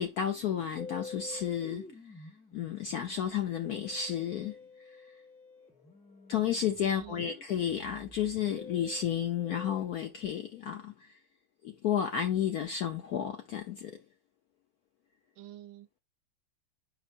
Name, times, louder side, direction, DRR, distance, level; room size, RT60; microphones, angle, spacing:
voice 1, 0.0-1.9 2.2-5.2 6.3-11.2 11.6-14.0, left 9 dB, 70° left, 0.9 m, -32 dB
Musical instrument, 0.8-9.8, left 3 dB, 5° left, 1.3 m, -49 dB
voice 2, 6.8-7.3 15.4-16.0, right 13 dB, 75° right, 1.5 m, -49 dB
7.1 x 5.5 x 2.5 m
omnidirectional pair, 2.3 m